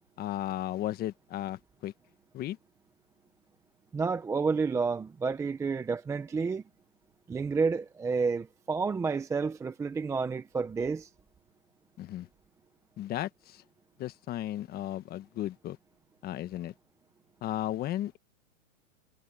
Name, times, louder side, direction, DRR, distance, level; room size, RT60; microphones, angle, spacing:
voice 1, 0.2-1.9 2.3-2.6 12.0-12.3 13.0-13.6 14.0-15.8 16.2-16.7 17.4-18.2, left 13 dB, 25° left, 1.4 m, -35 dB
voice 2, 3.9-6.6 7.3-11.1, right 4 dB, 5° right, 0.7 m, -30 dB
hypercardioid pair, 140°, 39 cm